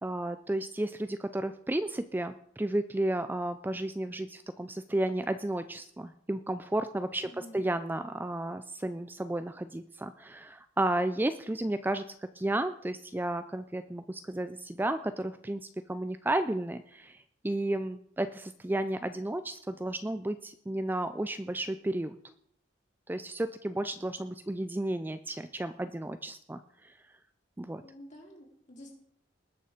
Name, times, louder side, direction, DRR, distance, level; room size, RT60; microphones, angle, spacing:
voice 1, 0.0-12.1 12.4-22.2 23.1-26.9 27.6-27.8, right 1 dB, 10° right, 10 dB, 0.4 m, -33 dB
voice 2, 7.2-7.6 27.8-29.0, equal, 40° left, -1 dB, 3.7 m, -50 dB
20.0 x 6.6 x 5.1 m, 0.67 s
head